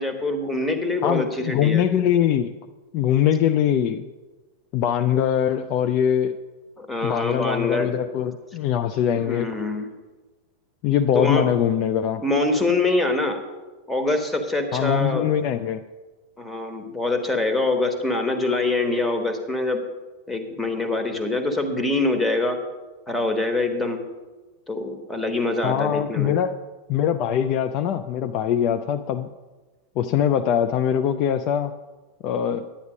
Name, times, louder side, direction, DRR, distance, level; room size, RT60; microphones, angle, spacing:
voice 1, 0.0-1.8 6.8-7.9 9.1-9.9 11.1-11.5 12.2-13.4 13.9-15.3 16.4-19.8 20.3-22.6 23.1-24.0 24.7-26.3, left 2 dB, 5° left, 5 dB, 1.5 m, -24 dB
voice 2, 1.0-2.5 2.9-4.0 4.7-6.3 7.0-9.5 10.8-12.2 14.7-15.8 25.6-26.6 26.9-29.3 30.0-31.7 32.2-32.7, left 9 dB, 40° left, 9 dB, 0.4 m, -22 dB
10.5 x 9.4 x 5.1 m, 1.2 s
figure-of-eight pair, 90°, 0 cm